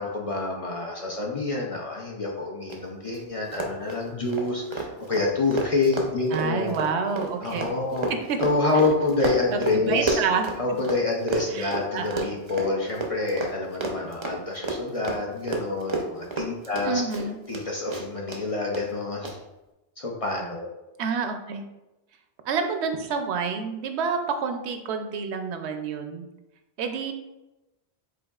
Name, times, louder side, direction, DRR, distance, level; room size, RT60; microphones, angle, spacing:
voice 1, 0.0-6.8 7.4-8.1 8.4-10.2 10.6-17.0 17.5-19.4 20.0-20.7, left 3 dB, 45° left, -2 dB, 0.5 m, -27 dB
Run, 2.7-2.8 3.1-3.2 3.5-11.0 11.3-17.6 17.9-18.4 18.7-18.8 19.2-19.3, right 3 dB, 35° right, 0.5 m, -30 dB
voice 2, 6.3-7.6 8.3-8.4 9.5-10.5 11.5-12.3 16.8-17.4 21.0-21.6 22.4-26.3 26.8-27.1, right 5 dB, 85° right, 6 dB, 0.9 m, -28 dB
5.2 x 3.6 x 2.3 m, 0.99 s
omnidirectional pair, 1.1 m